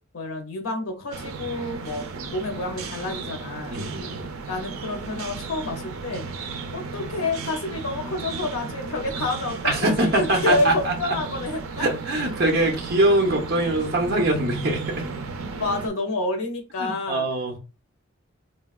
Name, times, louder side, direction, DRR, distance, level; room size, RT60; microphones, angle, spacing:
voice 1, 0.1-2.0 2.3-3.8 4.5-6.3 6.7-11.9 15.5-17.3, left 2 dB, 85° left, 4 dB, 0.6 m, -29 dB
sound 1, 1.1-15.9, right 4 dB, 85° right, 0.5 m, -34 dB
voice 2, 3.7-4.3 9.6-10.9 11.8-15.1 16.8-17.6, right 1 dB, 50° right, 2 dB, 0.7 m, -23 dB
3.1 x 2.2 x 2.4 m, 0.31 s
head